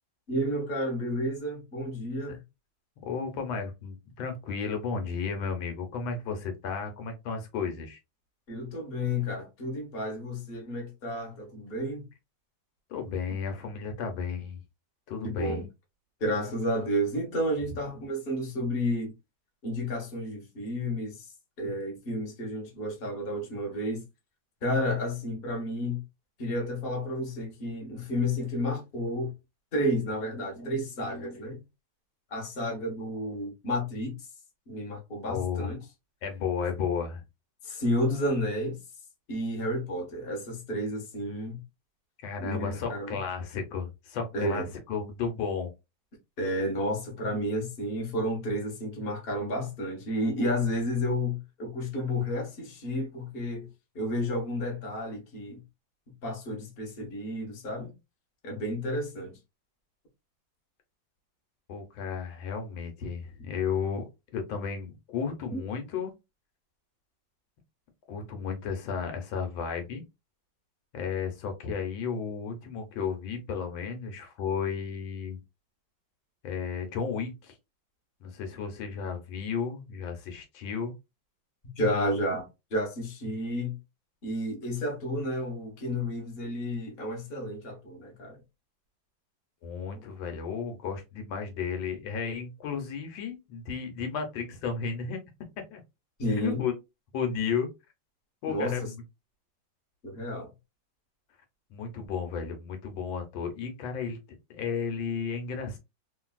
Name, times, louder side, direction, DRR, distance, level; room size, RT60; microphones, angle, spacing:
voice 1, 0.3-2.4 8.5-12.1 15.2-15.7 16.2-19.1 19.6-21.3 21.6-24.0 24.6-26.0 26.4-29.3 29.7-31.6 32.3-34.2 34.7-35.8 37.6-38.8 39.3-41.6 42.4-43.2 44.3-44.7 46.4-53.7 53.9-55.6 56.2-57.9 58.4-59.4 65.5-65.6 81.8-83.8 84.2-88.4 96.2-96.6 98.5-98.9 100.0-100.5, equal, 40° left, 1.0 m, -31 dB
voice 2, 3.0-8.0 12.9-14.6 15.1-15.6 35.3-35.7 36.2-37.2 42.2-45.7 61.7-66.2 68.1-70.0 70.9-75.4 76.4-77.5 78.2-80.9 89.6-95.3 95.6-95.8 96.3-96.7 97.1-97.7 98.4-99.0 101.7-105.8, left 6 dB, 85° left, 1.5 m, -33 dB
3.2 x 2.6 x 2.3 m
omnidirectional pair, 2.1 m